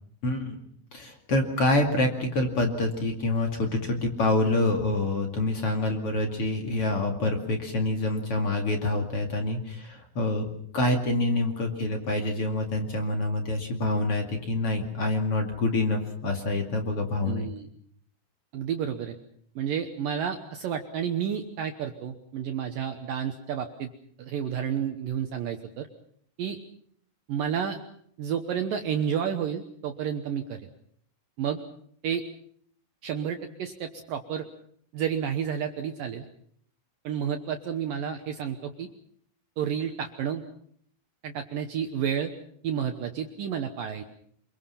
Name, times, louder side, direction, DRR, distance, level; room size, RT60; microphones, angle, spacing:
voice 1, 0.2-0.6 0.9-10.5 10.7-17.4, left 2 dB, 40° left, 3 dB, 2.3 m, -26 dB
voice 2, 17.3-17.7 18.5-19.2 19.6-23.9 24.2-25.9 26.4-26.6 27.3-27.8 28.2-30.7 31.4-31.6 32.0-32.2 33.0-34.5 34.9-36.2 37.0-38.9 39.6-40.4 41.2-42.3 42.6-44.0, right 8 dB, 80° right, 6 dB, 1.9 m, -30 dB
26.5 x 23.0 x 5.9 m, 0.64 s
omnidirectional pair, 5.7 m